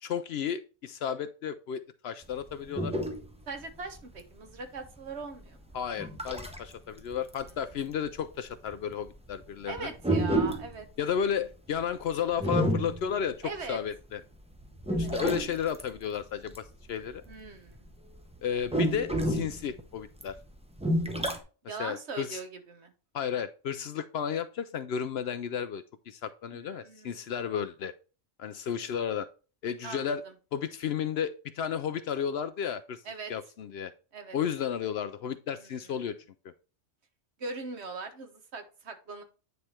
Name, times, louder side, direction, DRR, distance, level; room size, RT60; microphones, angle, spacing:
voice 1, 0.0-2.9 5.7-9.9 11.0-14.2 15.0-17.2 18.4-20.3 21.6-22.4 23.1-27.9 28.4-29.3 29.6-30.2 30.5-33.0 33.3-33.9 34.3-36.2, left 8 dB, 65° left, 12 dB, 0.7 m, -33 dB
sound 1, 2.2-6.7 7.1-14.0 14.4-17.9 18.1-21.4, right 1 dB, 5° right, 0.6 m, -31 dB
voice 2, 3.5-5.6 9.7-10.9 13.4-13.8 14.9-15.1 17.3-17.8 21.7-22.9 26.6-27.3 29.8-30.3 33.0-33.3 34.1-34.4 35.6-35.9 37.4-39.2, right 4 dB, 60° right, 7 dB, 1.4 m, -40 dB
9.4 x 3.3 x 4.3 m, 0.34 s
omnidirectional pair, 1.3 m